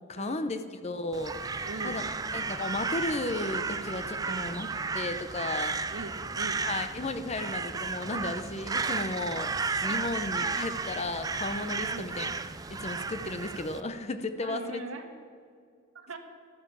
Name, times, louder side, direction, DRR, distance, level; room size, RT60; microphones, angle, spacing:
voice 1, 0.1-2.0 2.3-4.7 4.9-5.8 6.7-12.3 12.7-14.8, left 2 dB, 30° left, 9 dB, 0.7 m, -34 dB
Crow, 1.1-13.8, right 4 dB, 15° right, 0.4 m, -33 dB
voice 2, 1.6-2.0 4.2-4.5 5.9-6.6 11.8-12.1 14.4-15.0 15.9-16.2, right 2 dB, 80° right, 5 dB, 1.5 m, -40 dB
13.5 x 9.5 x 7.1 m, 2.1 s
head